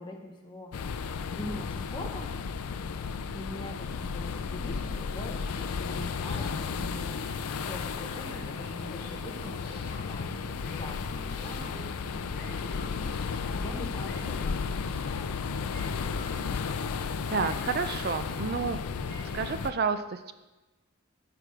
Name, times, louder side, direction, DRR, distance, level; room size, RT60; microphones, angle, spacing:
voice 1, 0.0-2.3 3.3-15.4, left 1 dB, 20° left, 0 dB, 1.0 m, -43 dB
sound 1, 0.7-19.7, left 5 dB, 85° left, 0.4 m, -34 dB
sound 2, 4.7-19.6, left 1 dB, 55° left, 2.8 m, -46 dB
voice 2, 17.3-18.8 19.3-20.3, right 5 dB, 45° right, 10 dB, 0.4 m, -30 dB
9.9 x 5.9 x 4.9 m, 1.1 s
head